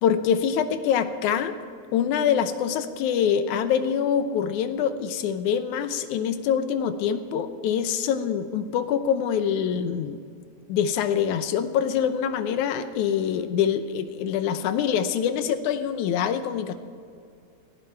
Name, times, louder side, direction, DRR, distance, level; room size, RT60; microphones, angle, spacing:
voice 1, 0.0-1.5 1.9-10.2 10.7-16.7, left 8 dB, 85° left, 10 dB, 2.2 m, -25 dB
18.0 x 16.0 x 4.6 m, 2.3 s
omnidirectional pair, 3.5 m